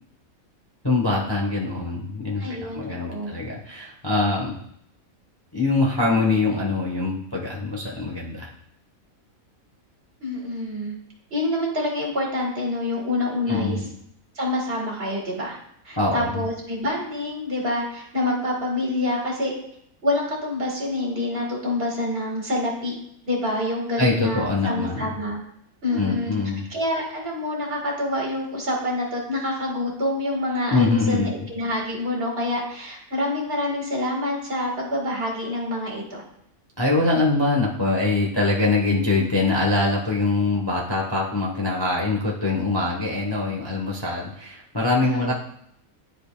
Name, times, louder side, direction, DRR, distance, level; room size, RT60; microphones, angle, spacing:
voice 1, 0.8-2.4 2.7-4.5 5.5-8.5 13.5-13.9 16.0-16.4 24.0-25.1 25.9-26.7 30.7-31.3 36.8-45.3, left 3 dB, 20° left, -3 dB, 0.8 m, -23 dB
voice 2, 2.4-3.3 10.2-10.9 11.3-13.8 14.3-15.6 15.8-19.5 20.0-22.9 23.3-25.4 25.8-26.3 26.7-36.2 45.1-45.3, left 1 dB, 45° right, -1 dB, 1.7 m, -27 dB
10.5 x 5.2 x 2.2 m, 0.71 s
omnidirectional pair, 1.5 m